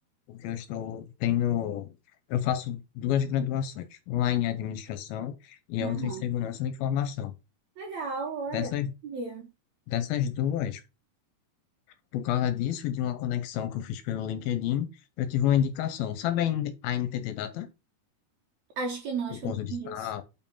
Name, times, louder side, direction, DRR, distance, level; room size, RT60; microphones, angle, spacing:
voice 1, 0.3-1.9 2.3-7.3 8.5-8.9 9.9-10.8 12.1-14.9 15.2-17.7 19.3-20.2, left 10 dB, 75° left, 2.4 m, -29 dB
voice 2, 5.8-6.2 7.8-8.7 9.0-9.5 18.8-20.1, right 4 dB, 65° right, 1.9 m, -34 dB
5.7 x 4.6 x 5.5 m
omnidirectional pair, 4.5 m